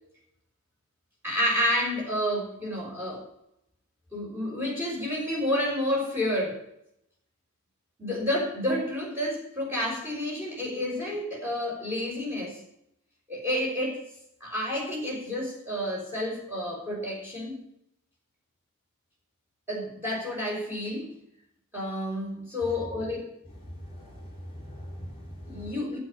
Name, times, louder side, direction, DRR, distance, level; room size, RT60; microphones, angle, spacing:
voice 1, 1.2-3.2 4.1-6.6 8.0-12.6 13.3-14.0 14.4-17.6 19.7-21.1 21.7-23.3 25.5-26.0, left 1 dB, 10° right, -4 dB, 5.8 m, -30 dB
voice 2, 23.7-25.7, left 1 dB, 30° left, -2 dB, 3.4 m, -41 dB
9.5 x 8.0 x 9.0 m, 0.77 s
head